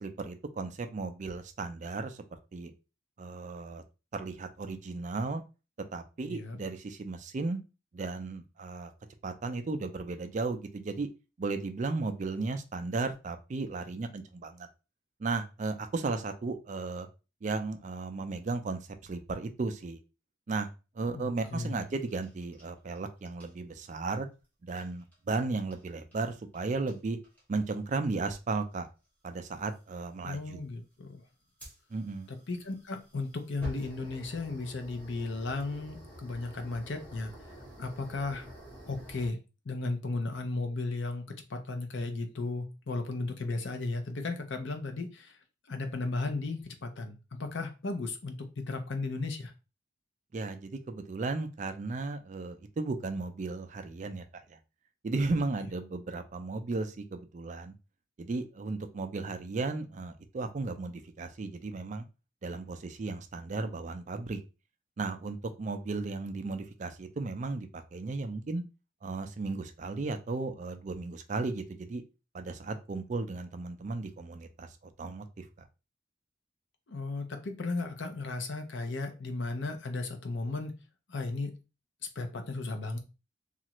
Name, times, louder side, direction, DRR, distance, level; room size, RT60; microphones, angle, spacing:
voice 1, 0.0-2.2 2.5-2.7 3.2-3.8 4.1-5.4 5.9-7.6 7.9-8.9 9.2-11.1 11.4-14.7 15.2-17.1 17.4-20.0 20.5-20.7 20.9-24.3 24.6-27.2 27.5-28.9 29.2-30.6 31.9-32.3 50.3-54.2 54.5-54.6 55.0-57.7 58.2-62.0 62.4-64.4 65.0-68.6 69.0-72.0 72.3-74.7 75.0-75.7, right 3 dB, 40° right, 8 dB, 0.4 m, -35 dB
voice 2, 6.3-6.6 21.1-21.8 30.2-31.2 32.3-37.3 37.8-38.5 38.9-39.4 39.7-41.2 41.5-45.4 45.7-49.5 76.9-80.7 81.1-81.5 82.2-83.0, left 3 dB, 65° left, 6 dB, 0.6 m, -35 dB
sound 1, 21.4-23.0 23.2-23.5 24.7-25.1 25.7-25.8 26.1-26.6 26.9-27.0 27.2-27.6 28.7-28.9 29.6-29.8 31.6-39.3, equal, 10° left, 0.9 m, -48 dB
3.0 x 2.4 x 2.9 m, 0.30 s
head